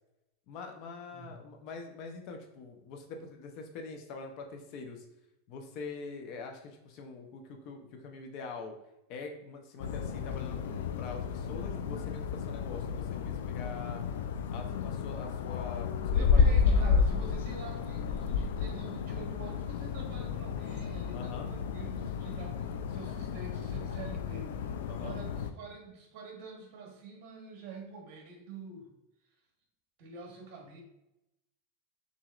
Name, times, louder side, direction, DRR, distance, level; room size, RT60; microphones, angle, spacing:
voice 1, 0.5-5.1 5.5-8.8 9.1-14.0 14.5-17.0 21.1-21.5 24.9-25.2, left 4 dB, 50° left, 4 dB, 0.7 m, -44 dB
sound 1, 9.8-25.5, left 6 dB, 85° left, 0.3 m, -31 dB
voice 2, 16.1-28.9 30.0-30.8, right 4 dB, 60° right, 2 dB, 1.2 m, -46 dB
6.1 x 2.7 x 2.4 m, 0.88 s
supercardioid pair, 140°, 0 cm